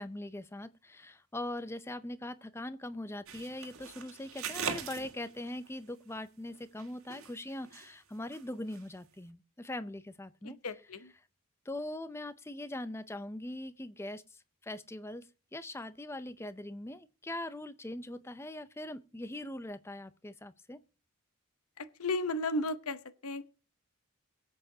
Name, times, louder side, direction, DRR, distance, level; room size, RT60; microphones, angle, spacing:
voice 1, 0.0-10.6 11.7-20.8, left 1 dB, 10° left, 0.5 m, -41 dB
sound 1, 3.3-5.7 6.5-7.9 8.2-8.4 8.7-8.8, right 7 dB, 75° right, 1.8 m, -41 dB
voice 2, 10.4-11.1 21.8-23.5, left 2 dB, 85° left, 0.8 m, -35 dB
22.5 x 8.0 x 2.8 m
head